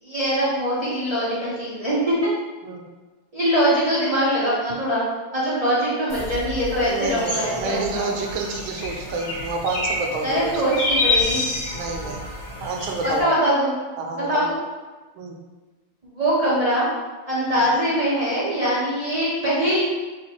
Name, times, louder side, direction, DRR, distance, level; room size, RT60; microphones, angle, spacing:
voice 1, 0.0-2.2 3.3-5.0 5.3-8.0 10.2-11.4 13.0-13.7 14.3-14.5 16.0-16.9 17.3-19.8, equal, 50° right, -10 dB, 0.4 m, -22 dB
sound 1, 6.1-13.2, left 2 dB, 55° left, 0.9 m, -28 dB
voice 2, 6.8-10.6 11.7-12.2 12.6-13.3 14.0-14.5 15.2-15.4, right 4 dB, 75° right, 2 dB, 1.4 m, -29 dB
3.4 x 3.3 x 4.2 m, 1.3 s
omnidirectional pair, 2.4 m